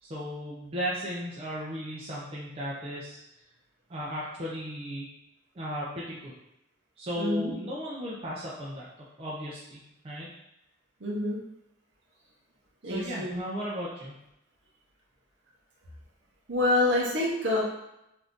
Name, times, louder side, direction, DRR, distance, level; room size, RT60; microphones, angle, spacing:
voice 1, 0.0-3.2 3.9-5.1 5.6-6.3 7.0-10.3 12.8-14.2, equal, 30° right, -6 dB, 0.4 m, -36 dB
voice 2, 7.2-7.5 11.0-11.4 12.8-13.4 16.5-17.6, left 2 dB, 55° right, -3 dB, 0.7 m, -26 dB
2.6 x 2.4 x 3.5 m, 0.86 s
head